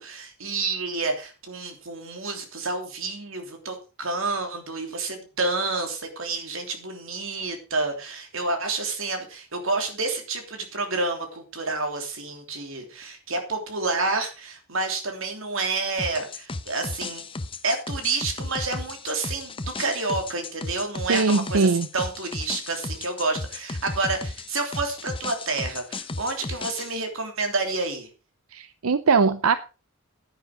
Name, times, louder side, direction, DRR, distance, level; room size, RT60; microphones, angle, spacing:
voice 1, 0.0-17.2 17.6-28.1, right 3 dB, 70° right, 5 dB, 3.1 m, -29 dB
sound 1, 16.0-26.9, left 3 dB, 25° left, 0.8 m, -35 dB
voice 2, 21.1-21.9 28.5-29.6, right 4 dB, 85° right, 13 dB, 0.7 m, -21 dB
10.5 x 10.0 x 5.0 m, 0.33 s
head